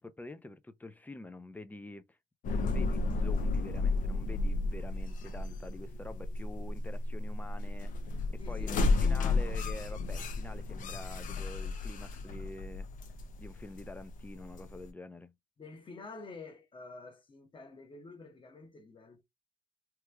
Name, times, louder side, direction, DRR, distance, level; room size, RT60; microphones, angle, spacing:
voice 1, 0.0-2.2 2.5-7.9 8.5-12.9 13.4-15.3, left 2 dB, 10° left, 0.4 m, -46 dB
sound 1, 2.4-14.9, left 3 dB, 50° left, 0.7 m, -33 dB
voice 2, 8.4-9.4 15.6-19.2, left 3 dB, 30° left, 1.0 m, -48 dB
3.0 x 2.4 x 3.3 m
cardioid pair, 110°, 17 cm